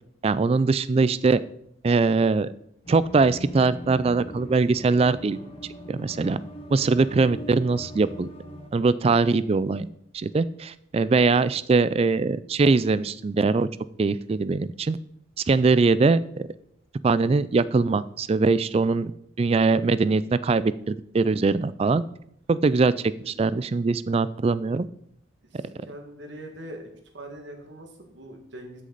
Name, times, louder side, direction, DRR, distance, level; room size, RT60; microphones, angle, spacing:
voice 1, 0.2-1.4 1.8-2.5 2.9-5.4 5.9-6.4 6.7-8.3 8.7-9.9 10.1-13.7 14.0-15.0 15.5-16.4 17.0-19.1 19.4-22.0 22.5-22.9 23.3-24.9, right 4 dB, 30° right, 17 dB, 0.3 m, -22 dB
sound 1, 2.8-8.7, left 1 dB, 30° left, 1.3 m, -41 dB
voice 2, 25.5-26.9 27.1-28.8, right 1 dB, 60° right, 3 dB, 1.9 m, -42 dB
12.5 x 6.5 x 4.0 m, 0.72 s
head